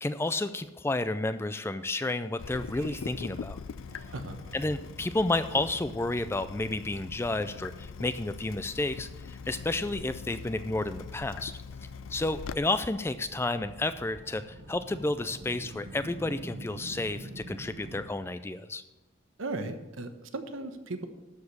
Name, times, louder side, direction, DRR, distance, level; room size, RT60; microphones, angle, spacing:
voice 1, 0.0-3.6 4.5-11.6 12.1-18.8, left 2 dB, 10° left, 12 dB, 0.3 m, -31 dB
Water tap faucet / Drip, 2.4-12.5, left 5 dB, 80° left, 0.4 m, -42 dB
Subway metro underground, 2.5-18.0, right 1 dB, 65° right, 1.3 m, -49 dB
voice 2, 19.4-21.1, right 2 dB, 85° right, 8 dB, 1.1 m, -36 dB
12.5 x 5.0 x 7.0 m, 1.1 s
head